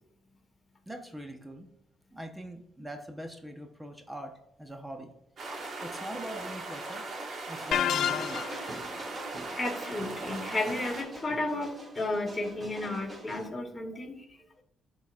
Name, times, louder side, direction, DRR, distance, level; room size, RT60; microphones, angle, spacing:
voice 1, 0.9-1.7 2.1-5.1 5.8-7.0 7.5-8.4 14.4-14.5, right 1 dB, 10° right, 4 dB, 0.9 m, -42 dB
sound 1, 5.4-11.0, right 2 dB, 55° right, 1.6 m, -39 dB
sound 2, 7.7-8.8, left 10 dB, 70° left, 0.3 m, -28 dB
sound 3, 8.1-13.5, right 1 dB, 35° right, 1.6 m, -44 dB
voice 2, 9.6-14.2, left 2 dB, 20° left, -1 dB, 2.1 m, -33 dB
11.5 x 4.0 x 2.5 m, 0.78 s
cardioid pair, 90°, 0 cm